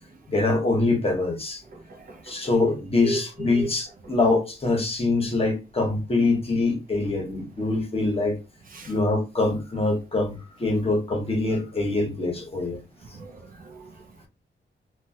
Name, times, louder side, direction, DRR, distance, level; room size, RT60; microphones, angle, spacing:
voice 1, 0.3-1.6 2.2-8.4 8.9-12.8, left 2 dB, 30° left, 0.9 m, -24 dB
voice 2, 1.9-2.3 3.0-3.2 3.6-3.7 8.7-8.9 13.1-13.8, right 2 dB, 45° right, 0.5 m, -34 dB
3.0 x 2.2 x 2.7 m
wide cardioid pair, 130°, 20 cm